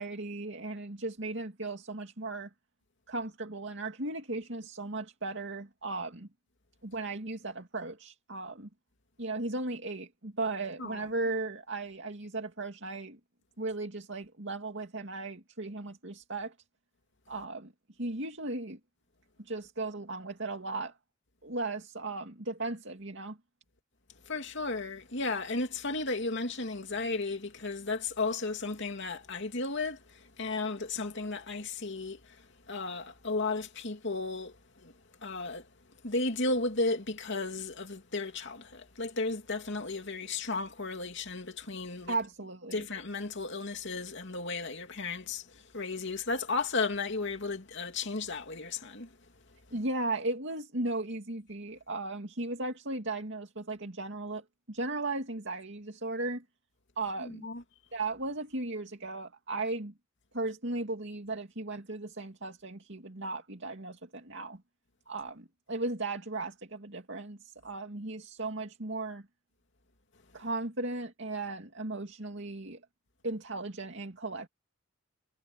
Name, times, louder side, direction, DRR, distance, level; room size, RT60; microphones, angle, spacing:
voice 1, 0.0-2.5 3.1-6.3 6.8-8.7 9.2-13.2 13.6-16.5 17.3-17.7 18.0-18.8 19.4-20.9 21.4-23.4 42.1-42.9 49.7-56.4 57.0-57.5 57.9-59.9 60.3-64.6 65.1-69.2 70.3-72.8 73.2-74.5, right 2 dB, 60° right, 2.6 m, -36 dB
voice 2, 24.3-30.0 30.4-32.2 32.7-34.9 35.2-35.6 36.0-42.1 42.7-45.4 45.7-49.1 57.2-57.6, left 3 dB, 60° left, 2.8 m, -34 dB
head